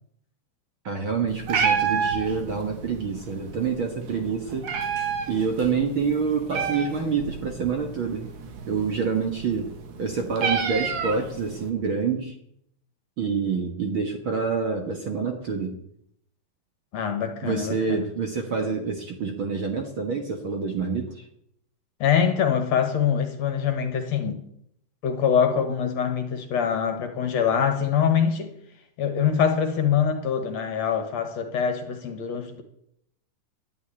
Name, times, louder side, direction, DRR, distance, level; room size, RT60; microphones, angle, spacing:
voice 1, 0.9-4.7 5.3-8.3 8.7-9.7 10.0-12.3 13.2-15.8 17.4-21.2, right 5 dB, 50° right, 1.8 m, -27 dB
Meow, 1.3-11.7, right 6 dB, 65° right, 3.0 m, -30 dB
voice 2, 16.9-18.0 22.0-24.4 25.0-28.5 29.0-32.6, left 7 dB, 60° left, 2.4 m, -24 dB
11.0 x 9.7 x 9.9 m
omnidirectional pair, 3.8 m